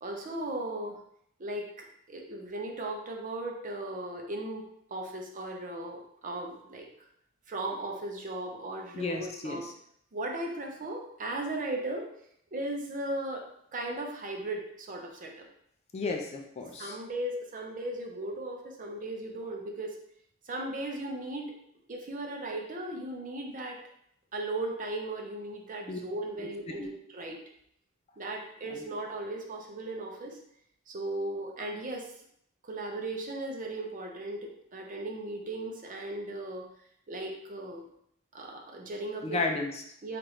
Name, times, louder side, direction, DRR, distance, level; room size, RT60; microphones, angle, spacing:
voice 1, 0.0-1.0 1.4-4.6 4.9-6.9 7.5-9.7 10.1-12.1 12.5-13.4 13.7-15.4 16.8-19.9 20.5-21.5 21.9-23.8 24.3-27.4 28.2-30.4 30.9-32.1 32.6-36.7 37.1-37.9 38.3-39.4 40.0-40.2, right 2 dB, 40° right, 1 dB, 0.6 m, -37 dB
voice 2, 8.9-9.7 15.9-17.0 25.9-26.0 26.4-26.5 26.8-26.9 28.7-28.9 39.2-39.8, left 3 dB, 30° left, 2 dB, 0.4 m, -34 dB
4.7 x 2.5 x 3.1 m, 0.72 s
head